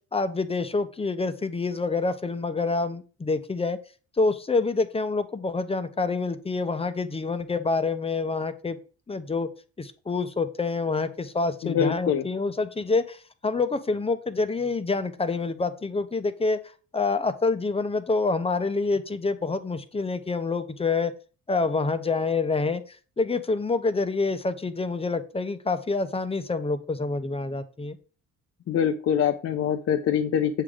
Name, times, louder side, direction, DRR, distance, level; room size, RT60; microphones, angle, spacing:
voice 1, 0.1-3.8 4.2-8.8 9.1-9.5 9.8-16.6 16.9-21.1 21.5-22.8 23.2-28.0, left 3 dB, 20° left, 11 dB, 0.7 m, -27 dB
voice 2, 11.6-12.2 28.7-30.6, left 8 dB, 55° left, 6 dB, 0.6 m, -24 dB
7.4 x 5.0 x 3.7 m, 0.38 s
cardioid pair, 90°, 30 cm